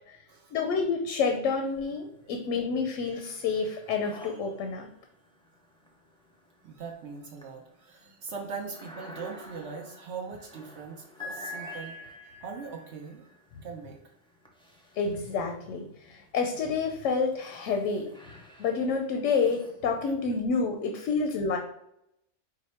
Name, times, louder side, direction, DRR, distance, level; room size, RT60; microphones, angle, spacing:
voice 1, 0.5-4.9 13.5-13.6 14.9-18.1 18.6-21.6, left 5 dB, 85° left, 4 dB, 0.9 m, -29 dB
sound 1, 1.6-2.3 2.6-15.8 16.4-20.9, left 1 dB, 5° left, 0.4 m, -48 dB
voice 2, 6.6-12.0 12.4-13.3 13.6-14.0 18.5-18.6, right 5 dB, 70° right, 1 dB, 0.9 m, -41 dB
4.8 x 2.1 x 4.2 m, 0.77 s
omnidirectional pair, 1.2 m